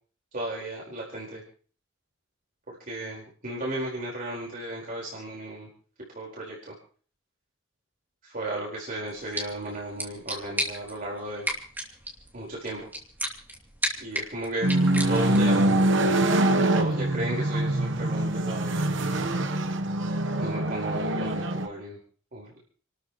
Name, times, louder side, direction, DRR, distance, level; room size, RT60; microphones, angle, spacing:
voice 1, 0.3-1.4 2.7-5.7 6.1-6.7 8.2-11.5 12.3-12.9 14.0-14.7 15.1-15.8 16.5-19.3 20.4-22.0 22.3-22.6, right 1 dB, 45° right, -4 dB, 4.6 m, -35 dB
sound 1, 9.1-15.6, right 1 dB, 10° right, 2.9 m, -35 dB
sound 2, 14.6-21.7, right 1 dB, 65° right, 1.1 m, -24 dB
30.0 x 13.5 x 3.1 m, 0.44 s
head